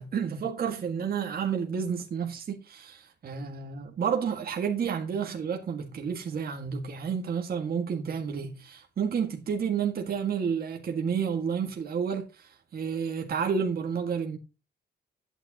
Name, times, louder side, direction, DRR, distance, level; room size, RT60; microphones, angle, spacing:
voice 1, 0.0-14.4, right 7 dB, 55° right, 1.8 m, -30 dB
11.5 x 9.0 x 2.9 m
cardioid pair, 110°, 18 cm